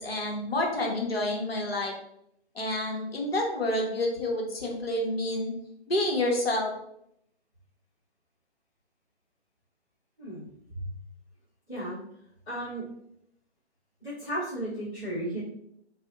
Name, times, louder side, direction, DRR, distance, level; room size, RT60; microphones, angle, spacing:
voice 1, 0.0-1.9 2.5-5.5 5.9-6.7, left 1 dB, 60° left, 0 dB, 0.9 m, -28 dB
voice 2, 12.5-12.8 14.0-15.4, right 1 dB, 5° left, -13 dB, 0.5 m, -34 dB
2.6 x 2.1 x 3.7 m, 0.74 s
figure-of-eight pair, 140°, 34 cm